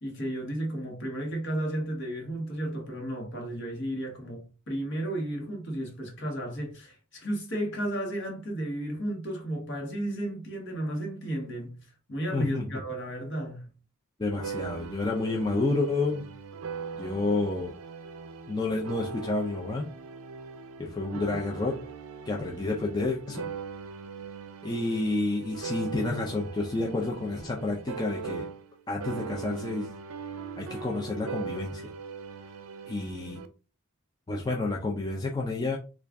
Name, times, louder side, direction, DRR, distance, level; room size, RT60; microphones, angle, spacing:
voice 1, 0.0-11.8 12.1-13.7, right 1 dB, 50° left, 1.1 m, -33 dB
voice 2, 12.3-12.6 14.2-16.3 17.0-17.7 18.5-19.9 20.8-21.8 22.3-23.5 24.6-28.5 28.9-29.9 30.6-31.9 32.9-33.4 34.3-35.8, left 2 dB, 20° left, 0.4 m, -30 dB
sound 1, 14.3-28.8 29.0-33.5, right 5 dB, 70° right, 0.4 m, -40 dB
3.5 x 2.4 x 3.5 m
head